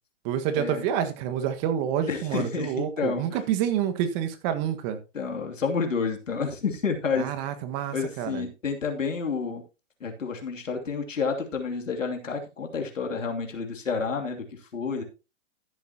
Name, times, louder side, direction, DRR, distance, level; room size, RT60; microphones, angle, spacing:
voice 1, 0.2-5.0 7.2-8.4, right 9 dB, 35° right, 9 dB, 1.6 m, -28 dB
voice 2, 2.1-3.2 5.1-7.3 7.9-9.6 10.0-14.4 14.7-15.0, left 5 dB, 90° left, 3 dB, 2.9 m, -29 dB
14.0 x 8.2 x 2.9 m, 0.29 s
hypercardioid pair, 130°, 37 cm